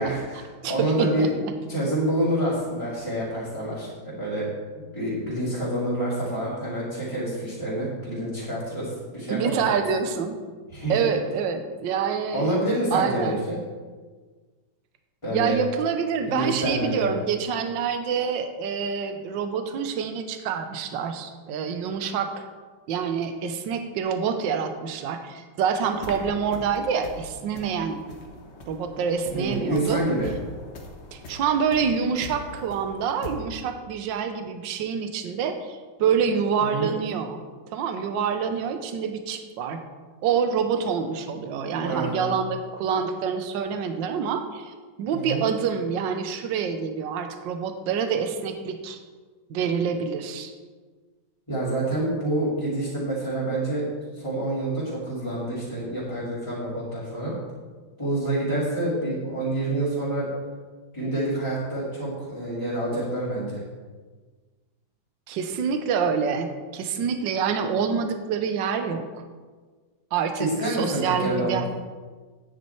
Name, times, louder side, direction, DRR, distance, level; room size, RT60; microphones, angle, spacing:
voice 1, 0.0-1.3 1.7-4.5 4.7-9.6 10.7-10.9 12.3-13.6 15.2-15.6 16.3-17.2 29.3-30.3 36.6-36.9 41.8-42.2 45.1-45.4 51.5-53.9 54.1-57.3 58.0-60.3 60.9-63.6 70.4-71.7, right 1 dB, 15° left, -11 dB, 2.5 m, -27 dB
voice 2, 0.6-1.3 9.3-10.4 10.9-12.5 12.9-13.4 15.3-22.4 22.9-28.0 28.7-30.0 31.1-37.4 37.7-39.8 40.2-49.0 49.5-50.5 65.3-69.1 70.1-71.7, right 6 dB, 75° right, 7 dB, 1.5 m, -27 dB
sound 1, 25.8-33.3, left 1 dB, 40° left, 1.2 m, -42 dB
9.3 x 8.9 x 4.5 m, 1.4 s
omnidirectional pair, 2.1 m